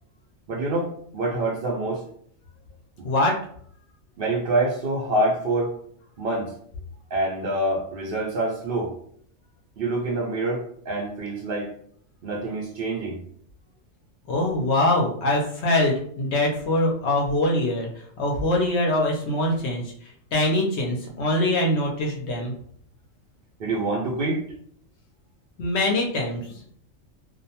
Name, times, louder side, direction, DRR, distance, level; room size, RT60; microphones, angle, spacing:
voice 1, 0.5-2.0 3.0-3.1 4.2-5.7 6.2-6.5 7.1-8.9 9.8-11.7 12.2-13.2 23.6-24.4, right 2 dB, 60° right, -2 dB, 0.6 m, -26 dB
voice 2, 3.0-3.4 14.3-17.9 18.2-19.8 20.3-22.5 25.6-26.7, left 1 dB, 65° left, -1 dB, 0.8 m, -23 dB
2.4 x 2.1 x 2.8 m, 0.62 s
omnidirectional pair, 1.4 m